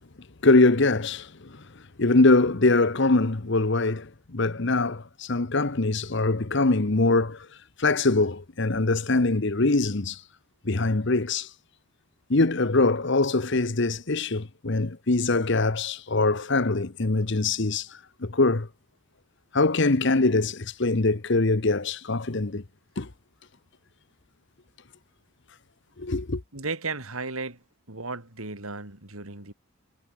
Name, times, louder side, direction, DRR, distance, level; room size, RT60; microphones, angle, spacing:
voice 1, 0.4-1.6 2.0-7.5 7.8-10.2 10.6-11.5 12.3-17.9 18.2-18.7 19.5-22.6 23.0-23.1 26.0-26.4, left 3 dB, 55° left, 1.0 m, -23 dB
voice 2, 26.5-29.5, right 3 dB, 75° right, 4.0 m, -35 dB
head